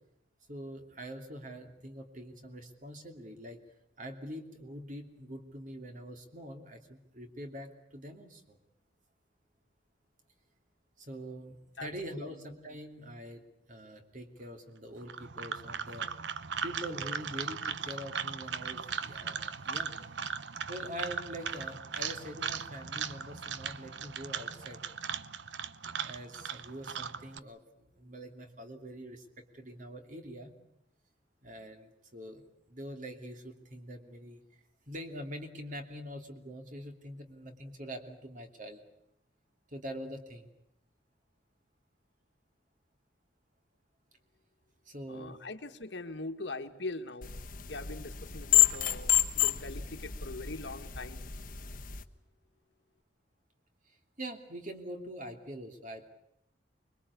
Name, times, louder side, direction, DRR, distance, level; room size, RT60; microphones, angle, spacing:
voice 1, 0.5-3.6 4.0-8.6 11.0-13.4 13.7-16.1 16.6-19.9 20.7-24.8 26.0-29.2 29.5-30.5 31.4-32.4 32.7-34.4 34.9-38.8 39.7-40.5 44.8-45.4 53.9-56.1, equal, 45° right, 5 dB, 2.9 m, -44 dB
voice 2, 11.8-12.4 45.1-47.3 47.7-51.3, left 2 dB, 70° left, 7 dB, 1.7 m, -42 dB
sound 1, 15.0-27.4, right 6 dB, 75° right, 0.9 m, -38 dB
sound 2, 47.2-52.0, left 12 dB, 45° left, 1.2 m, -29 dB
25.5 x 22.0 x 8.4 m, 0.80 s
head